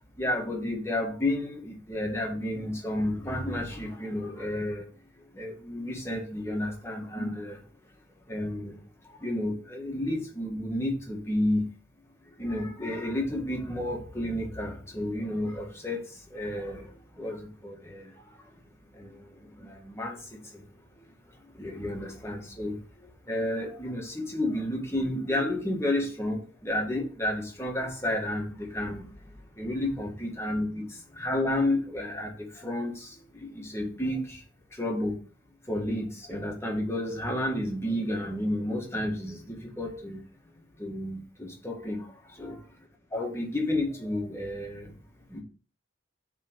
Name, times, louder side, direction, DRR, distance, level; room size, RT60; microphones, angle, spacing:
voice 1, 0.2-4.8 5.4-7.5 8.3-8.7 9.2-11.6 12.4-16.0 16.3-16.8 17.2-17.4 17.6-18.0 19.9-20.1 21.6-22.7 23.3-29.0 29.6-30.8 31.2-32.3 32.6-32.9 33.7-34.2 34.8-35.1 35.7-39.4 39.8-40.2 40.8-42.0 42.4-42.5 43.1-44.9 45.3-45.4, left 1 dB, 15° left, 1.6 m, -31 dB
7.3 x 3.8 x 6.5 m
head